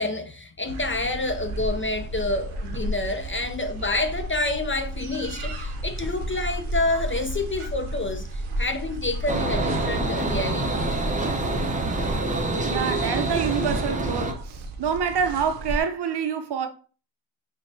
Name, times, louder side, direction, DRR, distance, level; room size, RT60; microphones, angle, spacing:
voice 1, 0.0-10.9, left 2 dB, 25° left, 0.4 m, -28 dB
sound 1, 0.7-15.8, right 1 dB, 85° right, 1.0 m, -33 dB
sound 2, 9.3-14.3, right 2 dB, 15° right, 0.6 m, -26 dB
voice 2, 12.6-16.7, right 7 dB, 55° right, 0.7 m, -27 dB
6.1 x 2.2 x 2.7 m
cardioid pair, 75°, 49 cm